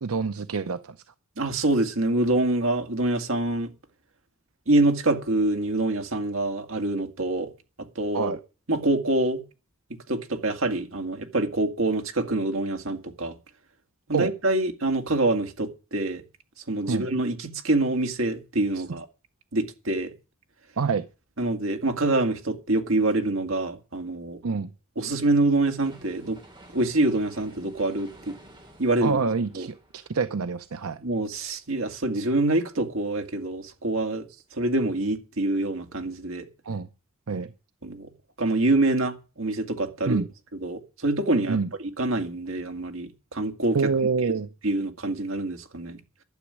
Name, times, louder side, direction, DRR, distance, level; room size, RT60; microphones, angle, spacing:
voice 1, 0.0-1.0 8.1-8.4 14.1-14.3 16.9-17.1 18.8-18.9 20.8-21.0 24.4-24.7 29.0-31.0 36.7-36.9 37.3-37.5 40.1-40.3 41.5-41.7 43.7-44.5, right 4 dB, 85° right, 0.7 m, -26 dB
voice 2, 1.4-3.7 4.7-7.5 8.0-8.4 8.7-9.4 9.9-13.3 14.1-16.2 16.7-19.1 19.5-20.1 21.4-24.4 25.0-26.4 26.7-28.3 28.8-29.2 29.5-29.7 31.0-34.3 34.5-36.5 37.8-38.1 38.4-40.2 40.6-41.6 42.0-43.8 44.2-44.3 44.6-46.0, right 2 dB, 65° right, 2.1 m, -25 dB
sound 1, 25.8-31.8 32.2-32.3, right 1 dB, 20° right, 3.8 m, -52 dB
12.0 x 7.2 x 9.8 m
head